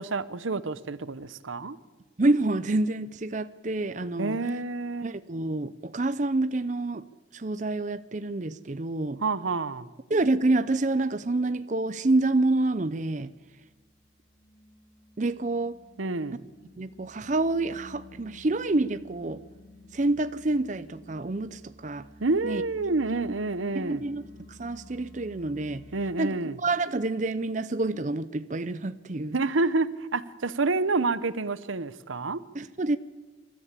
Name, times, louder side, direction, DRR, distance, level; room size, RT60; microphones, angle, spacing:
voice 1, 0.0-1.8 4.2-5.1 9.2-9.9 16.0-16.4 22.2-24.0 25.9-26.5 29.3-32.4, right 3 dB, 90° right, 15 dB, 0.9 m, -28 dB
voice 2, 2.2-4.4 5.0-7.1 7.3-9.2 10.1-13.3 15.2-15.8 16.8-19.4 19.9-22.1 22.4-22.6 23.1-23.2 23.7-24.2 24.5-25.9 26.2-29.4 32.5-33.0, right 2 dB, 40° right, 12 dB, 0.6 m, -27 dB
sound 1, 13.0-26.1, left 1 dB, 60° left, 3.1 m, -52 dB
26.5 x 13.5 x 8.4 m, 1.3 s
head